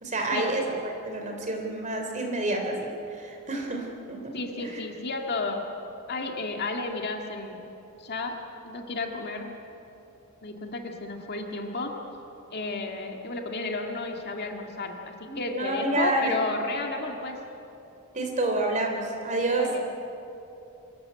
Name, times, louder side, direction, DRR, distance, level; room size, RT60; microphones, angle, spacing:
voice 1, 0.0-4.3 4.6-4.8 15.3-16.4 18.1-19.7, right 2 dB, 35° right, 2 dB, 3.3 m, -29 dB
voice 2, 4.3-5.7 6.1-7.6 8.0-9.5 10.4-12.0 12.5-17.4 19.5-20.0, left 3 dB, 50° left, 2 dB, 2.0 m, -32 dB
25.0 x 14.5 x 9.7 m, 2.9 s
head